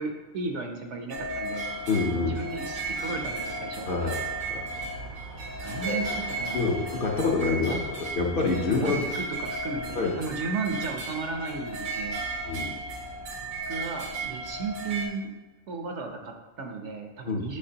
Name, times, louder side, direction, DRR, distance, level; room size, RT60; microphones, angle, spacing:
voice 1, 0.0-1.7 2.2-3.9 5.6-6.7 7.6-7.8 8.7-12.2 13.4-15.3 15.7-17.6, right 3 dB, 60° right, 4 dB, 1.0 m, -35 dB
sound 1, 1.1-15.1, right 2 dB, 80° right, 1.4 m, -34 dB
voice 2, 1.9-2.4 3.9-4.1 4.5-4.6 5.6-5.9 6.5-7.8 8.1-9.1 10.0-10.1 12.5-12.7 17.2-17.5, left 4 dB, 50° left, 0 dB, 0.8 m, -26 dB
8.5 x 5.9 x 2.8 m, 1.1 s
omnidirectional pair, 1.4 m